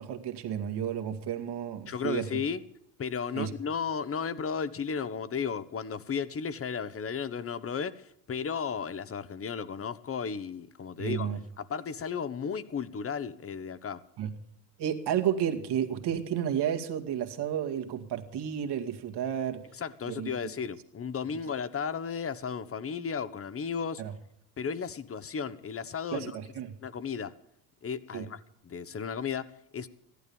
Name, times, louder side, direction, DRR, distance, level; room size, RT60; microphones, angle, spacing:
voice 1, 0.0-2.3 3.4-3.5 11.0-11.4 14.2-14.3 14.8-19.6 20.1-20.3 24.0-24.1 26.1-26.7 28.1-28.2, right 9 dB, 55° right, 2.1 m, -31 dB
voice 2, 1.9-2.6 3.0-14.0 19.7-24.0 24.6-26.3 26.8-27.3 27.8-29.9, left 6 dB, 30° left, 1.1 m, -34 dB
15.0 x 11.5 x 7.1 m
supercardioid pair, 80°, 47 cm